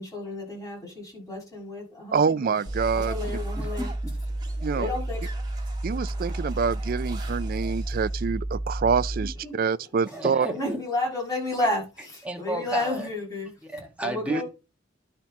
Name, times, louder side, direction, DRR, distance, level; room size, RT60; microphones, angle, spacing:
voice 1, 0.0-2.6 2.9-3.9 4.7-5.3 9.2-9.9 10.4-13.5 14.0-14.4, left 2 dB, 20° left, 6.2 m, -32 dB
voice 2, 2.1-3.2 4.6-4.9 5.8-10.5 14.3-14.4, right 6 dB, 50° right, 0.3 m, -26 dB
sound 1, 2.5-8.3, right 3 dB, 25° right, 2.2 m, -47 dB
sound 2, 2.7-9.5, right 1 dB, 35° left, 4.2 m, -31 dB
voice 3, 3.6-4.1 10.0-10.8 12.2-13.1 13.6-14.4, right 1 dB, 5° right, 1.5 m, -32 dB
10.5 x 4.4 x 5.9 m
head